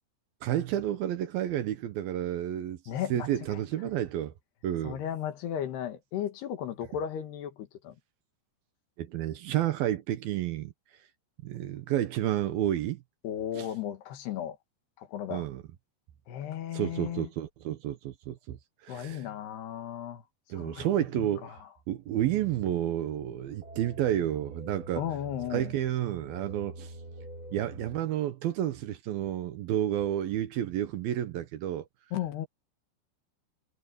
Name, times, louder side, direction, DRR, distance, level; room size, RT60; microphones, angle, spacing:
voice 1, 0.4-2.8 3.1-4.3 4.6-5.0 9.0-10.7 11.4-13.0 13.6-13.7 15.3-15.6 16.7-18.6 18.8-19.2 20.5-21.6 21.9-25.0 25.5-26.9 27.5-31.8, right 12 dB, 70° right, 2.6 m, -30 dB
voice 2, 2.9-3.6 4.8-8.0 13.2-14.6 15.0-15.5 16.3-17.3 18.9-20.2 20.6-20.9 21.1-21.6 25.0-25.7 32.1-32.5, left 10 dB, 75° left, 3.7 m, -35 dB
sound 1, 22.2-28.0, right 1 dB, 20° right, 4.7 m, -46 dB
omnidirectional pair, 4.9 m